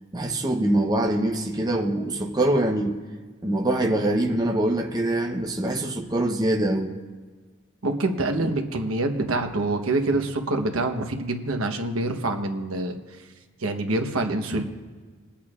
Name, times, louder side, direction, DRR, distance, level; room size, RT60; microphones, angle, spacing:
voice 1, 0.1-3.0 3.4-6.9, right 1 dB, 20° right, 2 dB, 0.7 m, -24 dB
voice 2, 7.8-13.0 13.6-14.6, right 2 dB, 80° right, 5 dB, 1.1 m, -26 dB
22.0 x 8.6 x 2.4 m, 1.5 s
head